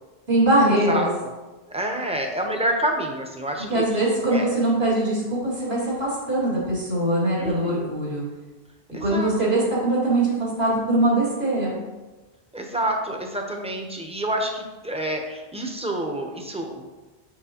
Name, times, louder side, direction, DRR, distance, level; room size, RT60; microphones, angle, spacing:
voice 1, 0.3-1.1 3.7-8.2 9.0-11.8, right 1 dB, 75° right, -6 dB, 2.6 m, -22 dB
voice 2, 1.7-3.8 4.3-4.5 7.4-7.9 8.9-9.3 12.5-16.9, right 1 dB, 5° right, 2 dB, 0.7 m, -28 dB
7.3 x 6.0 x 2.9 m, 1.2 s
omnidirectional pair, 1.0 m